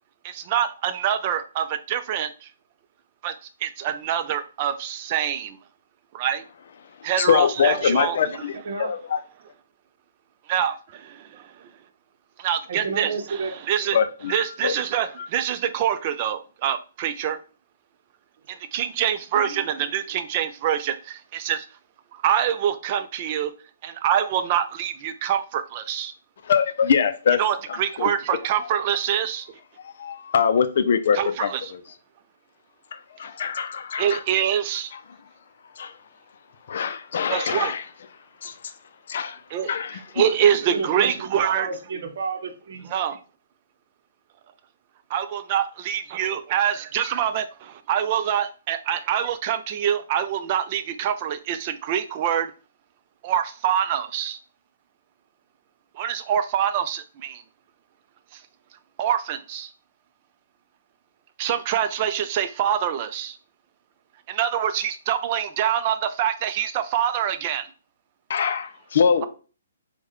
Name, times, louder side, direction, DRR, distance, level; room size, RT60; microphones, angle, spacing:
voice 1, 0.2-2.3 3.2-3.3 3.6-5.6 6.1-6.4 7.0-8.2 10.5-10.7 12.4-14.0 14.3-17.4 18.7-21.6 22.2-23.5 23.8-26.1 27.4-29.5 31.1-31.7 34.0-34.9 37.3-37.7 39.5-39.7 40.1-41.7 42.9-43.2 45.1-52.5 53.2-54.4 56.0-57.4 59.0-59.7 61.4-63.3 64.3-67.7, right 9 dB, 35° right, 0.4 m, -25 dB
voice 2, 7.2-9.2 13.9-14.7 15.2-15.3 26.4-27.4 27.7-28.1 29.8-31.8 32.9-34.2 35.8-35.9 36.7-37.8 38.4-38.5 39.1-39.4 39.7-40.3 68.3-69.3, left 7 dB, 60° left, 0.4 m, -23 dB
voice 3, 8.2-8.9 12.7-13.5 18.5-18.9 19.3-19.7 40.4-42.9, right 4 dB, 65° right, 0.7 m, -32 dB
4.6 x 2.2 x 3.0 m
hypercardioid pair, 150°, 0 cm